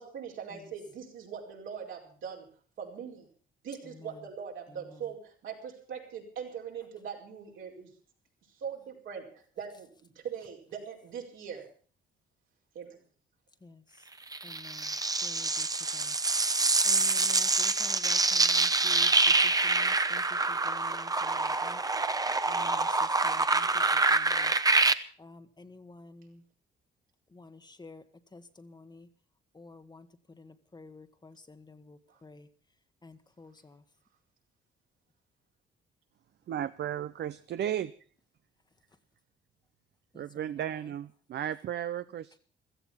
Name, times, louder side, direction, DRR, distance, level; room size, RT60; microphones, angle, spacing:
voice 1, 0.0-2.5 2.8-3.3 3.6-7.9 8.5-11.7 12.7-13.0 32.1-32.2, right 7 dB, 80° right, -1 dB, 4.8 m, -41 dB
sound 1, 14.3-24.9, right 3 dB, 20° right, 0.9 m, -26 dB
voice 2, 14.4-14.9 15.2-15.7 15.9-16.1 16.8-19.1 19.6-20.2 20.5-21.8 22.5-23.7 24.1-24.5 25.2-26.4 27.3-28.0 28.3-29.1 29.5-30.1 30.4-32.5 33.0-33.8 40.1-40.2, left 3 dB, 20° left, 9 dB, 1.3 m, -50 dB
voice 3, 36.5-37.9 40.1-42.4, right 10 dB, 60° right, 13 dB, 0.6 m, -34 dB
16.0 x 14.0 x 5.7 m, 0.43 s
cardioid pair, 90°, 20 cm